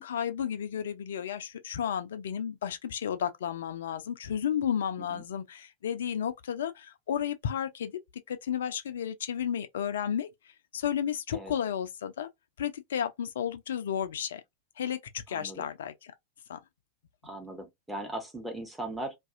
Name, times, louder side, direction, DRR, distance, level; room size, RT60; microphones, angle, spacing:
voice 1, 0.0-7.9 8.3-10.3 10.7-12.3 12.6-14.4 14.8-15.0 15.3-15.9 16.5-16.6, left 9 dB, 60° left, 0.4 m, -32 dB
voice 2, 15.3-15.7 17.2-19.2, right 1 dB, 5° right, 0.9 m, -39 dB
2.5 x 2.3 x 2.5 m
figure-of-eight pair, 90°, 0 cm